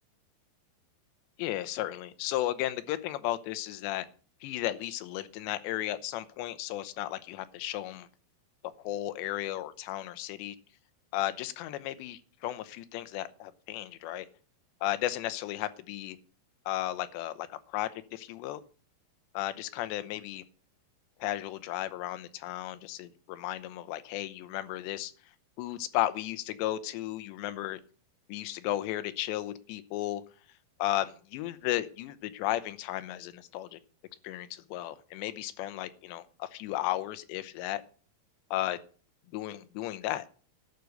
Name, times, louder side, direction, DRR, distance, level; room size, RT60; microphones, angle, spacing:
voice 1, 1.4-4.1 4.4-8.1 8.8-10.6 11.1-14.3 14.8-16.2 16.7-18.6 19.3-20.4 21.2-25.1 25.6-27.8 28.3-30.2 30.8-33.8 34.2-37.8 38.5-38.8 39.3-40.2, left 14 dB, 90° left, 13 dB, 3.1 m, -34 dB
12.0 x 6.5 x 8.1 m, 0.40 s
omnidirectional pair, 4.9 m